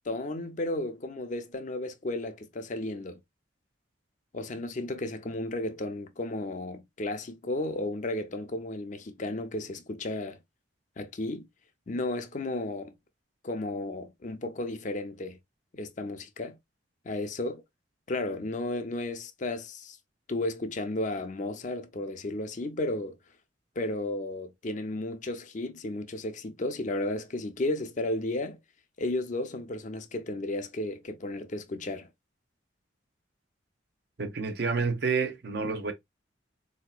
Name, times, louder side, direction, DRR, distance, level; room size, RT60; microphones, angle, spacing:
voice 1, 0.1-3.2 4.3-10.4 11.0-11.5 11.9-12.9 13.4-15.4 15.7-16.6 17.0-17.6 18.1-20.0 20.3-23.2 23.8-28.6 29.0-32.1, left 2 dB, 40° left, 0.5 m, -33 dB
voice 2, 34.2-35.9, right 4 dB, 55° right, 0.7 m, -29 dB
4.1 x 2.8 x 2.2 m
head